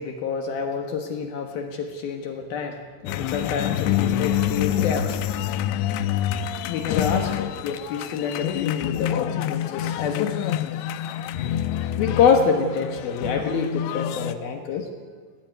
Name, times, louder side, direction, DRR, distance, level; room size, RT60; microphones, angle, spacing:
voice 1, 0.0-2.8 3.0-5.2 6.7-10.3 12.0-14.9, left 6 dB, 65° left, 5 dB, 2.9 m, -26 dB
sound 1, 3.1-14.3, left 11 dB, 80° left, 3.0 m, -27 dB
19.0 x 17.0 x 9.4 m, 1.5 s
omnidirectional pair, 5.2 m